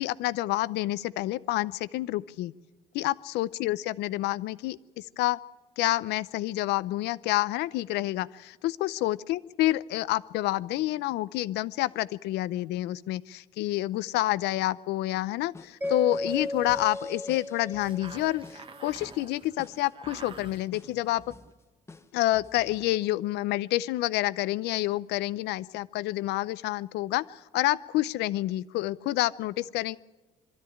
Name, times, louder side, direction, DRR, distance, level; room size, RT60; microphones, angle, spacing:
voice 1, 0.0-2.5 2.9-5.4 5.8-21.2 22.1-30.0, left 16 dB, 85° left, 18 dB, 0.6 m, -28 dB
sound 1, 15.4-23.0, left 3 dB, 15° left, 0.9 m, -51 dB
Mallet percussion, 15.8-18.8, left 1 dB, 10° right, 0.7 m, -35 dB
sound 2, 16.3-21.5, right 4 dB, 30° right, 1.2 m, -49 dB
23.0 x 13.0 x 10.0 m, 1.1 s
cardioid pair, 110°, 17 cm